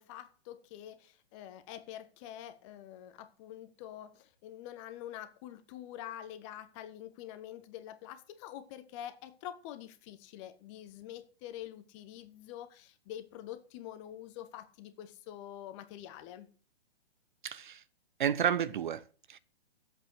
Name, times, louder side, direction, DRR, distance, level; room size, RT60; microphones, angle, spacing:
voice 1, 0.0-16.5, left 11 dB, 30° left, 1.3 m, -46 dB
voice 2, 17.4-17.8 18.2-19.4, right 9 dB, 50° right, 0.7 m, -31 dB
8.9 x 8.1 x 7.8 m
figure-of-eight pair, 120°, 32 cm